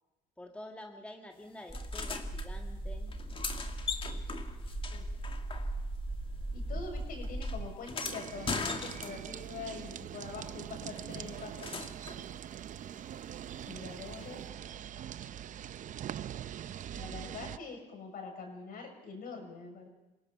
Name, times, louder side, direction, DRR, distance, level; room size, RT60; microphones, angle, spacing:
voice 1, 0.4-3.1, left 1 dB, 5° left, 3 dB, 1.8 m, -48 dB
sound 1, 1.7-2.5 3.1-6.1 6.3-9.5 11.0-12.2 14.2-14.3, left 4 dB, 30° left, 2.1 m, -40 dB
sound 2, 1.7-7.6, right 1 dB, 10° right, 5.1 m, -38 dB
voice 2, 6.5-11.7 12.2-12.3 13.6-14.4 16.9-19.9, left 4 dB, 60° left, 3 dB, 7.1 m, -44 dB
sound 3, 8.0-17.6, right 10 dB, 50° right, 0.6 m, -43 dB
28.0 x 18.0 x 5.7 m, 0.99 s
cardioid pair, 110°, 17 cm